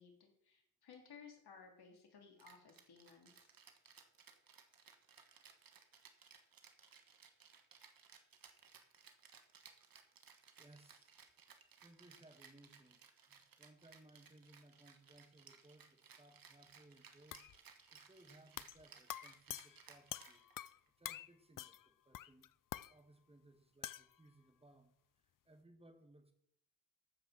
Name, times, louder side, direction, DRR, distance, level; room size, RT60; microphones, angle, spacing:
voice 1, 0.0-3.5, left 6 dB, 85° left, 2 dB, 3.1 m, -59 dB
Rattle (instrument), 2.4-20.9, right 6 dB, 65° right, 1.5 m, -62 dB
voice 2, 10.6-11.1 11.8-20.5 21.0-22.5 22.9-26.3, right 1 dB, 15° right, 7 dB, 1.8 m, -64 dB
sound 1, 17.3-17.6 18.6-18.8 19.1-20.8 21.0-21.3 21.6-21.9 22.1-22.9 23.8-24.1, left 12 dB, 60° left, 0.5 m, -47 dB
14.0 x 5.8 x 6.4 m, 0.73 s
cardioid pair, 90°, 37 cm